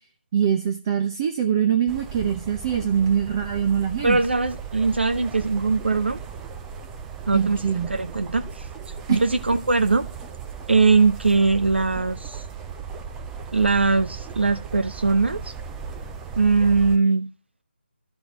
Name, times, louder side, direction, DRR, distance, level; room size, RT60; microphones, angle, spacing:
voice 1, 0.3-4.2 7.3-7.9 9.1-9.2, right 8 dB, 25° right, 0.8 m, -23 dB
sound 1, 1.9-17.0, right 6 dB, 10° right, 0.5 m, -37 dB
voice 2, 4.0-6.2 7.3-7.6 7.9-8.7 9.1-10.1 10.7-12.4 13.5-15.5 16.4-17.3, right 4 dB, 70° right, 0.8 m, -21 dB
12.0 x 4.9 x 6.1 m
figure-of-eight pair, 155°, 6 cm